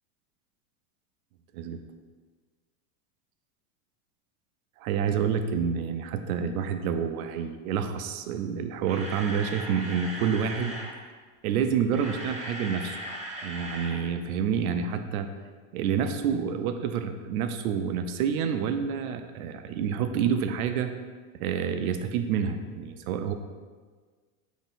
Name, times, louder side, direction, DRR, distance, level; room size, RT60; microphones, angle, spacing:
voice 1, 4.8-10.8 11.4-13.0 13.4-15.3 15.7-20.9 21.4-23.3, right 7 dB, 75° right, 8 dB, 0.6 m, -28 dB
Camera, 8.6-11.0 11.7-14.0 14.3-14.4 14.9-15.0, right 1 dB, 15° right, 0.6 m, -38 dB
3.9 x 3.0 x 4.0 m, 1.5 s
supercardioid pair, 125°, 44 cm